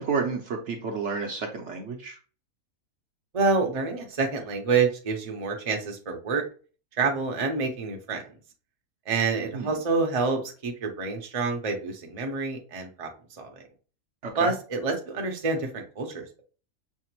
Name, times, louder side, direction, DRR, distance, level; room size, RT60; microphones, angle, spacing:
voice 1, 0.0-2.2 9.5-9.8 14.2-14.5, right 5 dB, 60° right, 2 dB, 0.9 m, -31 dB
voice 2, 3.3-6.4 6.9-8.3 9.1-13.6 14.4-16.4, right 4 dB, 35° right, 2 dB, 0.6 m, -28 dB
5.5 x 2.0 x 2.9 m, 0.37 s
omnidirectional pair, 1.5 m